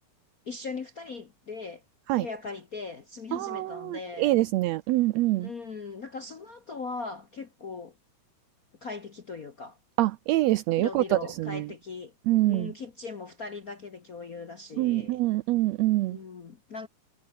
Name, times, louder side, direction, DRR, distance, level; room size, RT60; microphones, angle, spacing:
voice 1, 0.5-1.8 2.1-4.4 5.4-7.9 8.8-9.8 10.8-12.1 12.5-15.2 16.1-16.9, left 4 dB, 65° left, 0.8 m, -39 dB
voice 2, 3.3-5.5 10.0-11.6 12.3-12.7 14.8-16.2, right 17 dB, 80° right, 1.5 m, -25 dB
omnidirectional pair, 3.7 m